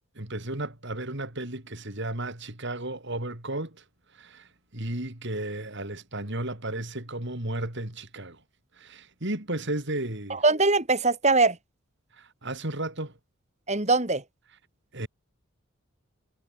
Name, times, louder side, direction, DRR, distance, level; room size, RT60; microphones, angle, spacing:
voice 1, 0.2-3.8 4.1-8.4 8.7-10.4 12.1-13.1 14.9-15.1, right 1 dB, 55° right, 3.8 m, -34 dB
voice 2, 10.3-11.6 13.7-14.2, right 3 dB, 30° right, 4.2 m, -22 dB
head